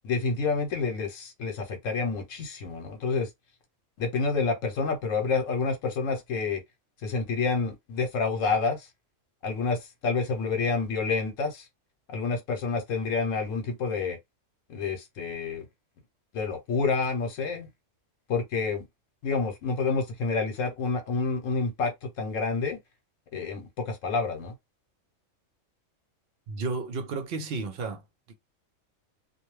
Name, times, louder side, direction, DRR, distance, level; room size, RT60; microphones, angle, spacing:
voice 1, 0.0-3.3 4.0-6.6 7.0-8.9 9.4-11.7 12.1-14.2 14.7-15.6 16.3-17.7 18.3-18.9 19.2-22.8 23.3-24.5, left 4 dB, 75° left, 1.0 m, -28 dB
voice 2, 26.5-28.0, right 4 dB, 60° right, 0.7 m, -32 dB
2.4 x 2.1 x 3.0 m
omnidirectional pair, 1.4 m